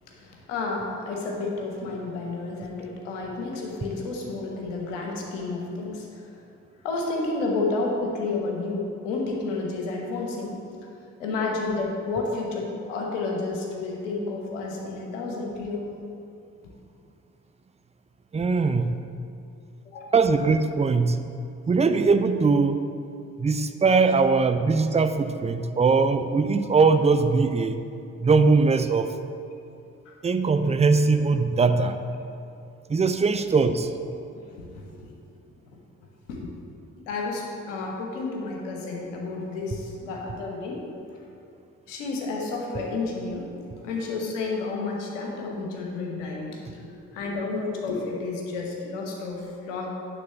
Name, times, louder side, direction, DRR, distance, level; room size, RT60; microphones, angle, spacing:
voice 1, 0.2-6.2 6.8-10.6 11.2-15.9 19.9-20.1 34.5-35.1 36.3-36.4 37.1-40.8 41.9-43.5 43.8-49.9, left 3 dB, 80° left, 0 dB, 1.1 m, -31 dB
voice 2, 18.3-19.0 20.1-21.2 21.7-22.8 23.4-27.8 28.2-29.1 30.2-32.0 32.9-33.9, right 4 dB, 20° right, 9 dB, 0.5 m, -21 dB
9.6 x 3.7 x 6.7 m, 2.6 s
figure-of-eight pair, 40°, 37 cm